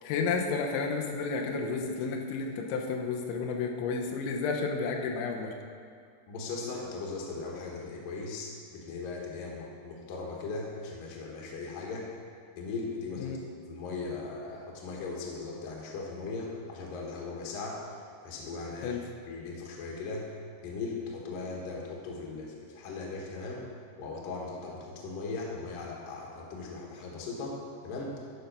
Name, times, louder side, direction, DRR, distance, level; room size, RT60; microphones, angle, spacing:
voice 1, 0.0-5.5 13.2-13.4 18.8-19.0, left 4 dB, 85° left, 1 dB, 3.2 m, -31 dB
voice 2, 6.3-8.5 8.8-12.1 12.6-13.3 13.7-17.8 18.2-19.0 19.3-20.3 20.6-23.6 24.0-27.6 27.8-28.1, left 3 dB, 65° left, -2 dB, 2.7 m, -38 dB
12.0 x 5.6 x 5.3 m, 2.2 s
omnidirectional pair, 5.2 m